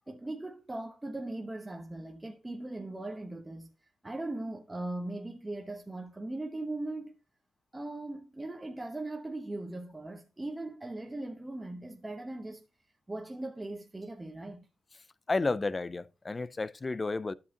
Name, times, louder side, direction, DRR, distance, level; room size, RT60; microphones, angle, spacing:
voice 1, 0.1-3.7 4.0-7.2 7.7-12.7 13.1-14.7, right 2 dB, 20° right, 1.1 m, -39 dB
voice 2, 15.3-17.3, left 3 dB, 30° left, 0.5 m, -31 dB
12.5 x 5.7 x 2.9 m
supercardioid pair, 50°, 0 cm